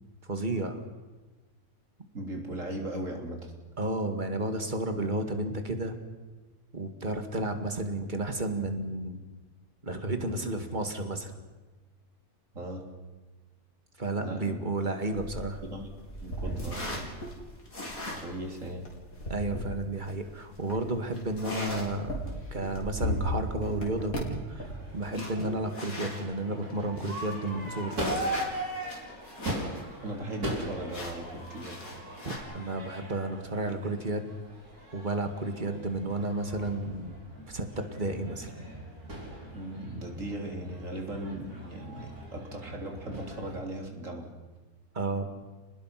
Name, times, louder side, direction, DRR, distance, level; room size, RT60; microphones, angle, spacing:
voice 1, 0.2-0.8 3.8-5.9 6.7-9.2 9.8-11.3 14.0-15.6 19.3-28.0 32.2-34.3 34.9-37.1 37.5-38.7 44.9-45.2, right 2 dB, 30° right, 6 dB, 2.2 m, -32 dB
voice 2, 2.1-3.5 10.2-10.5 12.5-12.8 14.2-14.8 15.6-15.9 16.2-17.1 18.2-18.9 30.0-31.8 39.5-44.3, right 1 dB, 55° right, 2 dB, 3.8 m, -38 dB
sound 1, 15.1-26.3 26.7-26.8 27.0-29.8 30.1-30.2 30.9-32.4, equal, 65° left, 4.4 m, -37 dB
Crowd / Fireworks, 24.6-43.6, right 1 dB, 75° right, 5.3 m, -40 dB
30.0 x 20.0 x 6.0 m, 1.3 s
omnidirectional pair, 1.6 m